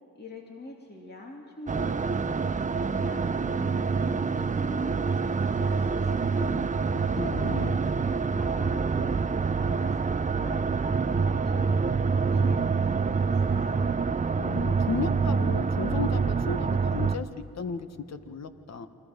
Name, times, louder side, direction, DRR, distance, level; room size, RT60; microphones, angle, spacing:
voice 1, 0.1-2.4 2.8-6.5 7.2-9.2 9.5-10.2 10.4-13.9, left 2 dB, 30° left, 0 dB, 2.6 m, -44 dB
sound 1, 1.7-17.2, right 5 dB, 20° right, 0.6 m, -26 dB
voice 2, 6.3-7.7 14.3-18.9, left 5 dB, 50° left, 9 dB, 1.4 m, -35 dB
29.0 x 24.0 x 5.2 m, 2.9 s
cardioid pair, 90°, 35 cm